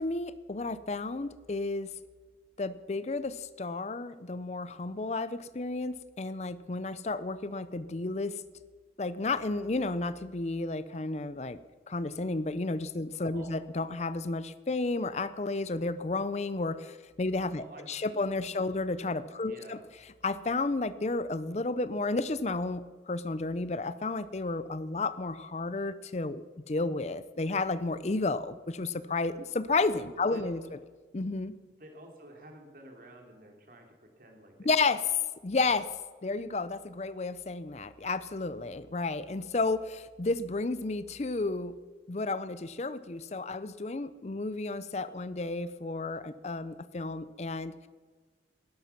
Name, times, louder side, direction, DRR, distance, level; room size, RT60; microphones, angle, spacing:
voice 1, 0.0-1.9 2.6-8.4 9.0-11.6 11.9-19.8 20.2-30.8 31.1-31.6 34.6-35.1 35.4-35.9 36.2-41.7 42.1-47.9, left 3 dB, 35° left, 14 dB, 0.5 m, -32 dB
voice 2, 13.1-13.6 17.5-18.2 19.4-19.9 30.2-30.7 31.8-33.9 34.2-35.0, right 1 dB, 50° right, 2 dB, 3.0 m, -50 dB
19.5 x 11.0 x 5.9 m, 1.4 s
head